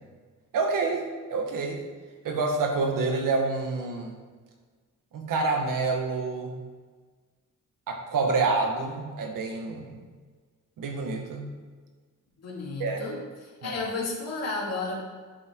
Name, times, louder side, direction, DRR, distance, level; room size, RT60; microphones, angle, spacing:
voice 1, 0.5-1.8 2.2-4.2 5.1-6.6 7.9-10.0 10.8-11.6 12.8-13.1 13.6-13.8, right 3 dB, 85° right, 3 dB, 1.7 m, -28 dB
voice 2, 12.4-14.9, left 3 dB, 55° left, -3 dB, 2.6 m, -33 dB
11.0 x 7.0 x 4.6 m, 1.5 s
wide cardioid pair, 160°, 32 cm